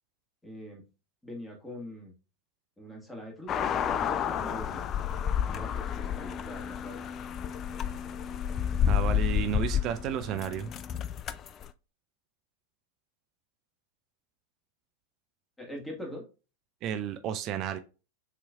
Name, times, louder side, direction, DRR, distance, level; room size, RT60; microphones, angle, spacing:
voice 1, 0.4-0.8 1.2-2.1 2.8-4.9 5.4-7.0 15.6-16.3, equal, 5° left, 1.6 m, -42 dB
sound 1, 3.5-11.7, left 8 dB, 30° left, 0.3 m, -30 dB
voice 2, 8.9-10.7 16.8-17.8, right 9 dB, 35° right, 0.5 m, -32 dB
6.5 x 3.1 x 2.3 m
figure-of-eight pair, 90°, 0 cm